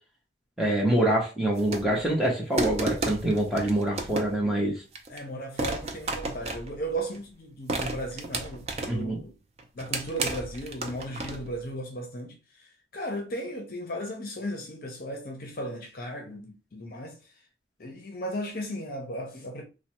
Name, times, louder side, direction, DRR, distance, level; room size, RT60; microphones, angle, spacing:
voice 1, 0.6-4.8 8.9-9.2, right 1 dB, ahead, 0.7 m, -25 dB
sound 1, 1.5-2.1 2.6-4.5 5.0-5.2 5.6-7.2 7.7-9.1 9.6-11.6, right 2 dB, 35° right, 0.4 m, -33 dB
voice 2, 5.1-9.4 9.7-17.3 17.8-19.6, right 1 dB, 50° left, 0.6 m, -36 dB
3.2 x 2.1 x 2.9 m
head